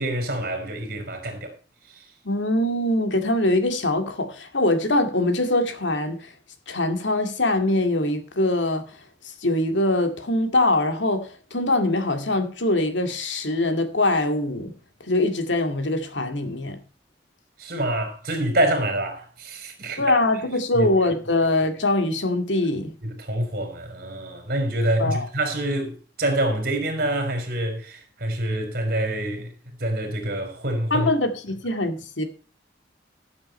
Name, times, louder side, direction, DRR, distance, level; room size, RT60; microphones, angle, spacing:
voice 1, 0.0-1.5 1.9-2.0 17.6-20.1 20.7-20.9 23.0-29.5 29.8-31.1, right 1 dB, 55° right, 4.2 m, -26 dB
voice 2, 2.2-6.3 6.7-8.9 9.2-14.7 15.0-16.8 20.0-22.9 25.0-25.3 30.9-32.2, left 2 dB, 90° left, 2.2 m, -23 dB
14.0 x 7.8 x 4.4 m
head